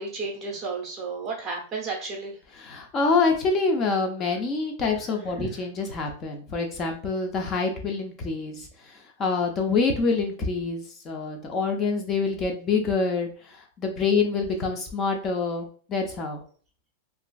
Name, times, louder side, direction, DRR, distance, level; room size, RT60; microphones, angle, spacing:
voice 1, 0.0-2.3 5.4-5.5, right 4 dB, 10° right, -1 dB, 0.7 m, -32 dB
voice 2, 2.5-16.4, left 4 dB, 20° left, 3 dB, 0.5 m, -26 dB
2.9 x 2.5 x 2.3 m, 0.42 s
supercardioid pair, 170°, 0 cm